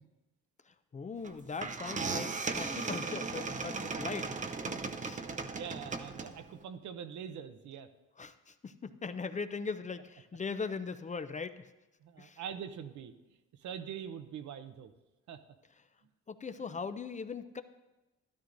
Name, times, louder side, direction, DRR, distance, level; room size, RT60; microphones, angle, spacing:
voice 1, 0.7-4.4 4.7-5.2 8.2-11.7 12.2-12.4 16.3-17.6, left 5 dB, 25° left, 11 dB, 0.5 m, -40 dB
sound 1, 1.2-1.3 1.6-6.6, right 4 dB, 25° right, 0.6 m, -37 dB
voice 2, 5.5-7.9 12.0-13.1 13.6-14.9 15.3-15.4, right 8 dB, 70° right, 10 dB, 0.8 m, -43 dB
13.0 x 11.5 x 2.6 m, 1.1 s
cardioid pair, 90°, 30 cm